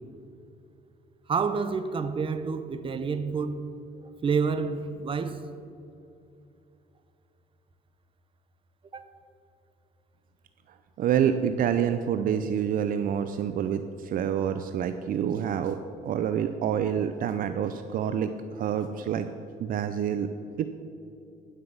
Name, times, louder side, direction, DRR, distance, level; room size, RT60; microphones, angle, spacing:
voice 1, 1.3-3.7 4.2-5.4 8.9-9.0, right 5 dB, 30° right, 0.8 m, -28 dB
voice 2, 11.0-15.8 16.0-19.3 19.6-20.3 20.6-20.7, right 9 dB, 55° right, 0.5 m, -27 dB
11.0 x 5.9 x 7.2 m
cardioid pair, 110°, 17 cm